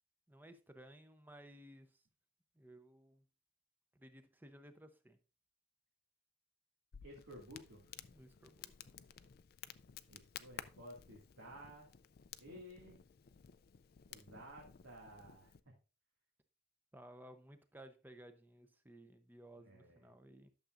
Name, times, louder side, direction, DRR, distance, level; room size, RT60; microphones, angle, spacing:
voice 1, 0.3-2.0 2.5-3.2 4.0-5.2 8.1-8.7 16.9-20.5, right 1 dB, 10° right, 9 dB, 0.7 m, -58 dB
Crackle, 6.9-15.6, left 9 dB, 45° left, 0.4 m, -55 dB
voice 2, 7.0-7.9 10.1-11.9 12.4-13.0 14.1-15.7 19.7-20.1, equal, 85° right, -3 dB, 2.2 m, -54 dB
12.0 x 6.9 x 2.5 m, 0.33 s
head